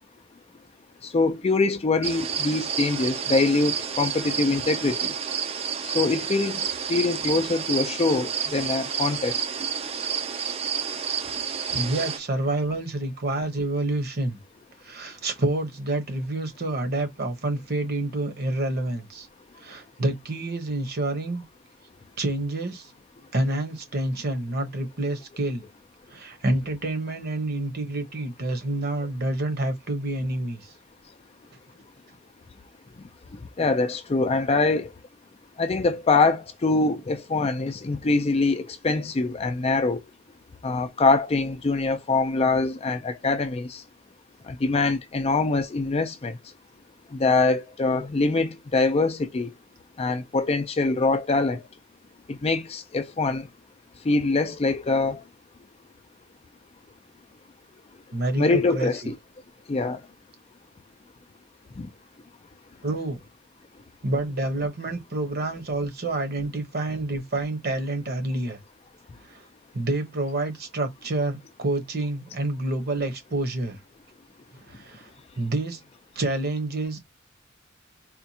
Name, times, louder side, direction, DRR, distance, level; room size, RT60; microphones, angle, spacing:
voice 1, 1.0-5.1 5.8-9.4 33.6-34.9 35.6-40.0 40.6-43.8 44.5-46.4 47.1-49.5 50.0-51.6 52.3-53.5 54.0-55.2 58.4-59.2 59.7-60.0 61.8-61.9, left 3 dB, 30° left, 0.4 m, -24 dB
sound 1, 2.0-12.2, right 7 dB, 30° right, 0.5 m, -30 dB
voice 2, 11.7-14.4 14.8-19.3 19.6-21.4 22.2-22.9 23.3-25.7 26.1-30.7 58.1-59.1 62.8-63.2 64.0-68.6 69.3-69.4 69.7-73.8 74.5-75.1 75.4-75.8 76.1-77.0, right 2 dB, 50° right, 1.0 m, -28 dB
4.2 x 2.4 x 2.8 m
head